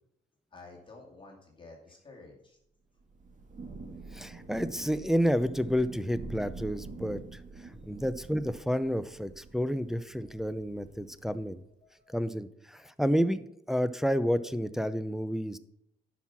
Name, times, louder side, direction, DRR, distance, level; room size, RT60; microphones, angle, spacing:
voice 1, 0.5-2.6 10.3-10.4 11.8-12.3, left 3 dB, 25° left, -1 dB, 2.4 m, -52 dB
Thunder / Rain, 3.0-11.6, right 3 dB, 40° right, 1.8 m, -46 dB
voice 2, 4.1-7.2 7.6-11.6 12.1-15.6, equal, ahead, 11 dB, 0.6 m, -30 dB
10.5 x 5.9 x 5.9 m, 0.77 s
cardioid pair, 90°, 20 cm